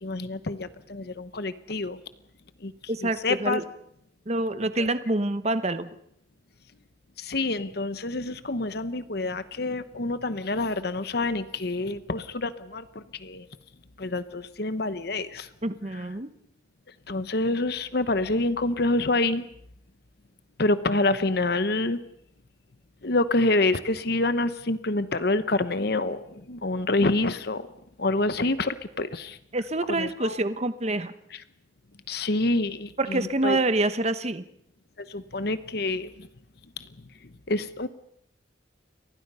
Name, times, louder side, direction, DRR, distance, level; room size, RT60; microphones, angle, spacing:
voice 1, 0.0-2.0 2.6-2.7 3.2-3.6 7.2-13.5 14.0-15.5 17.1-19.5 20.6-22.0 23.0-27.7 28.0-29.4 30.0-30.4 32.1-33.6 35.0-36.3 37.5-37.9, left 2 dB, 60° left, 12 dB, 1.0 m, -27 dB
voice 2, 2.9-3.6 4.3-5.9 15.6-16.3 29.5-31.1 33.0-34.4, right 2 dB, 35° right, 11 dB, 1.0 m, -26 dB
30.0 x 24.0 x 5.6 m, 0.73 s
head